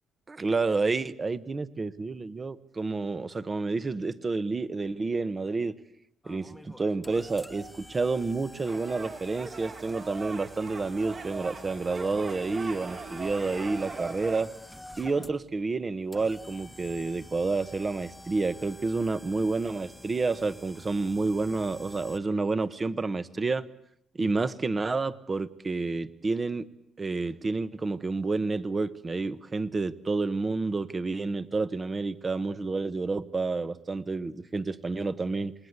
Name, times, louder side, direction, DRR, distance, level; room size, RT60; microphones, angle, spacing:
voice 1, 0.3-5.7 6.3-14.5 15.0-23.7 24.2-26.7 27.0-35.5, right 3 dB, 30° right, 14 dB, 1.2 m, -29 dB
sound 1, 6.2-22.2, left 1 dB, 5° left, 1.2 m, -49 dB
sound 2, 8.7-14.4, right 4 dB, 45° right, 3.0 m, -40 dB
28.0 x 20.0 x 8.2 m, 0.72 s
cardioid pair, 90°, 0 cm